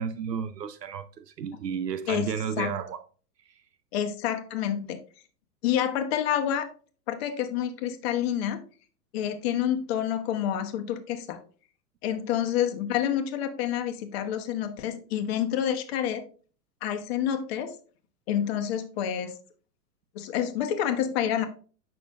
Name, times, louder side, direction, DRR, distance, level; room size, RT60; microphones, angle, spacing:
voice 1, 0.0-3.0, right 7 dB, 80° right, 0.7 m, -32 dB
voice 2, 3.9-5.0 5.6-6.7 7.1-8.6 9.1-11.4 12.0-16.2 16.8-17.7 18.3-19.4 20.1-21.5, left 10 dB, 40° left, 1.1 m, -28 dB
8.1 x 5.9 x 2.5 m
figure-of-eight pair, 110°, 48 cm